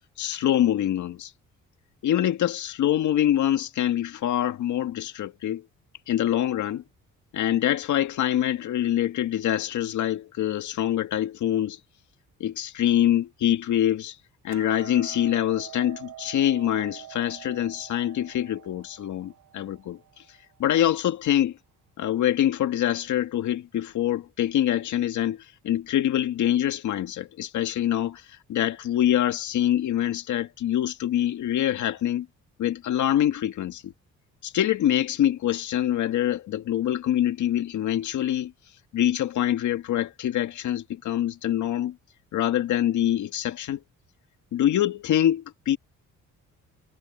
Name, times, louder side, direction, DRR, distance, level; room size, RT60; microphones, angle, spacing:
voice 1, 0.2-1.3 2.0-5.7 6.1-6.8 7.3-11.8 12.4-14.2 14.4-20.0 20.6-21.6 22.0-28.2 28.5-32.3 32.6-33.9 34.4-38.5 38.9-42.0 42.3-43.8 44.5-45.8, left 11 dB, 75° left, 2.1 m, -25 dB
Hammer, 14.5-20.7, right 13 dB, 70° right, 4.7 m, -45 dB
cardioid pair, 90°, 30 cm